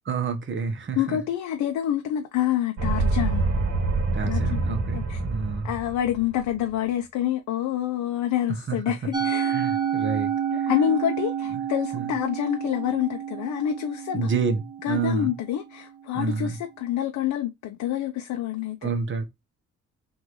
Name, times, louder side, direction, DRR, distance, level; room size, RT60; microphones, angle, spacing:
voice 1, 0.1-1.2 4.1-5.7 8.7-8.8 9.5-10.7 11.5-11.6 11.9-12.1 14.1-15.3 16.1-16.6 18.8-19.2, right 5 dB, 40° right, 1.1 m, -29 dB
voice 2, 1.0-3.6 4.2-4.6 4.9-5.2 5.6-9.5 10.5-14.3 14.8-18.9, left 11 dB, 75° left, 0.7 m, -27 dB
sound 1, 2.8-6.3, right 3 dB, 60° right, 1.6 m, -26 dB
Musical instrument, 9.1-15.5, right 8 dB, 15° right, 1.0 m, -29 dB
3.9 x 2.6 x 4.6 m
cardioid pair, 90°, 30 cm